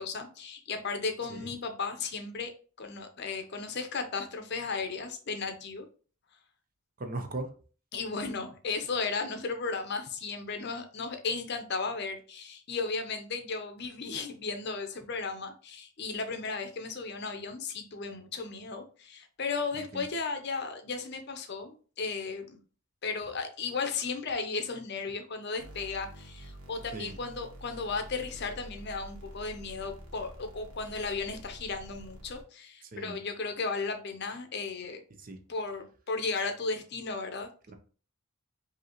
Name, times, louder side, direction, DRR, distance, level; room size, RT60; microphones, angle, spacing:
voice 1, 0.0-2.5 2.8-5.9 7.9-22.6 23.0-35.0 35.5-37.5, left 4 dB, 50° left, 6 dB, 0.6 m, -35 dB
voice 2, 7.0-7.5 19.9-20.0 26.9-27.1 32.9-33.2 35.2-35.4 37.7-37.8, right 2 dB, 40° right, 6 dB, 0.6 m, -38 dB
sound 1, 25.6-32.4, equal, 85° right, 1.3 m, -48 dB
5.2 x 2.8 x 2.9 m, 0.40 s
head